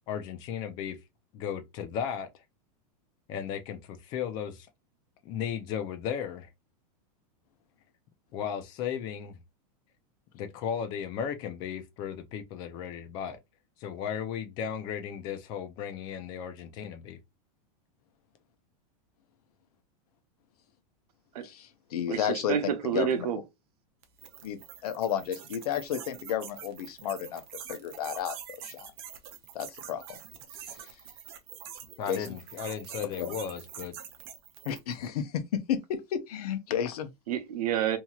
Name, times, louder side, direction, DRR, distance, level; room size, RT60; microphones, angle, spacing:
voice 1, 0.1-1.0 1.3-2.3 3.3-4.7 5.2-6.5 8.3-9.4 10.3-13.4 13.8-17.2 32.0-34.0, left 8 dB, 20° left, 0.3 m, -35 dB
voice 2, 21.4-22.5 22.9-23.3 24.4-27.4 27.7-28.4 28.6-28.9 29.5-30.0 30.7-30.8 32.1-32.4 33.2-33.3 34.6-37.1, left 9 dB, 80° left, 0.7 m, -32 dB
voice 3, 22.1-23.4 37.3-38.0, right 9 dB, 85° right, 0.8 m, -29 dB
sound 1, 24.0-35.0, right 9 dB, 40° right, 0.5 m, -45 dB
2.9 x 2.7 x 2.3 m
supercardioid pair, 175°, 20 cm